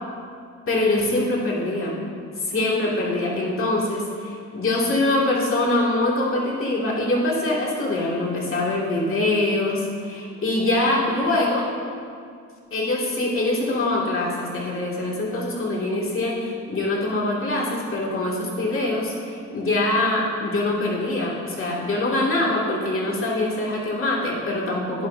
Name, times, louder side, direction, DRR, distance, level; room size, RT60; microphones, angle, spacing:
voice 1, 0.7-2.0 2.4-11.7 12.7-25.1, left 2 dB, 45° left, -4 dB, 2.6 m, -24 dB
11.5 x 9.7 x 2.8 m, 2.3 s
cardioid pair, 90°, 30 cm